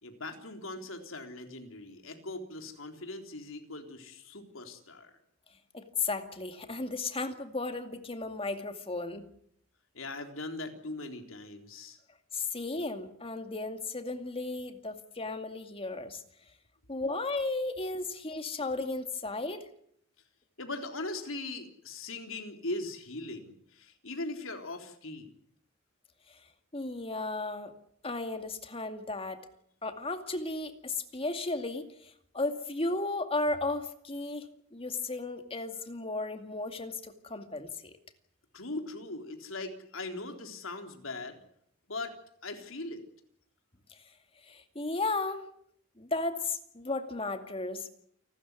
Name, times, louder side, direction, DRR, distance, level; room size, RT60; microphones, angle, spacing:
voice 1, 0.0-5.1 9.9-12.0 17.0-17.1 20.6-25.3 38.5-41.4 41.9-43.0, left 2 dB, 75° left, 5 dB, 3.8 m, -40 dB
voice 2, 5.7-9.3 12.3-16.2 16.9-19.7 26.3-26.4 26.7-27.7 28.0-29.4 29.8-38.0 43.9-44.0 44.4-45.5 46.0-47.9, left 3 dB, 30° left, 7 dB, 2.3 m, -35 dB
29.0 x 13.5 x 9.6 m, 0.68 s
head